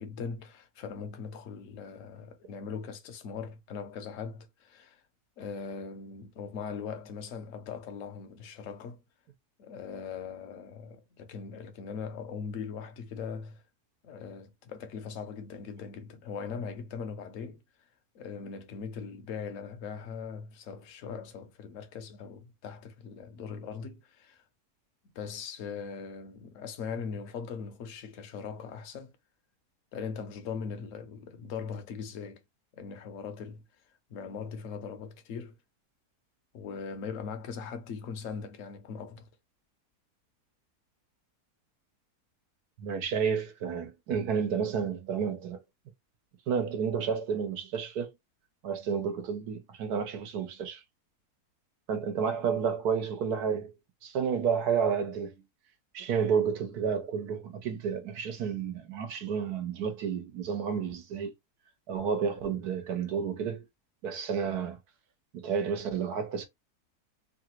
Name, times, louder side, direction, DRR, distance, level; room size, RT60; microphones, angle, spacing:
voice 1, 0.0-5.0 5.4-9.0 9.6-13.6 14.0-17.6 18.1-24.4 25.1-29.1 29.9-32.4 32.7-33.6 34.1-35.5 36.5-39.3, left 6 dB, 60° left, 1.0 m, -40 dB
voice 2, 42.8-45.6 46.5-48.1 48.6-50.8 51.9-53.7 54.0-55.4 55.9-61.3 61.9-63.6 64.0-64.8 65.3-66.5, right 6 dB, 75° right, 1.3 m, -31 dB
3.2 x 2.4 x 2.8 m
omnidirectional pair, 1.7 m